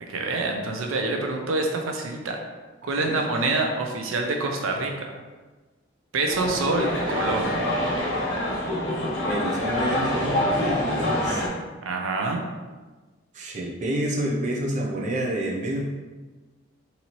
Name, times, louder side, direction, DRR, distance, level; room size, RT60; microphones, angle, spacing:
voice 1, 0.1-2.4 2.8-5.1 6.1-7.5 11.8-12.4, right 3 dB, 85° right, 2 dB, 0.5 m, -26 dB
voice 2, 2.8-3.2 9.2-11.5 13.3-15.8, right 1 dB, 35° right, -2 dB, 0.5 m, -29 dB
sound 1, 6.3-11.5, left 1 dB, 65° left, 1.0 m, -26 dB
4.0 x 2.7 x 2.9 m, 1.3 s
head